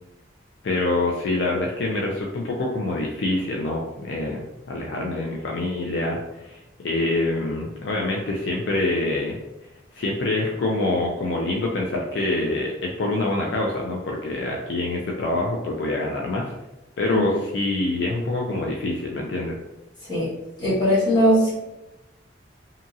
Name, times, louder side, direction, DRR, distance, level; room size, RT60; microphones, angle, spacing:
voice 1, 0.6-9.4 9.9-16.5 17.0-19.6, left 2 dB, 65° left, -1 dB, 0.4 m, -25 dB
voice 2, 20.6-21.5, equal, 25° left, -9 dB, 1.2 m, -19 dB
2.8 x 2.6 x 2.3 m, 0.93 s
head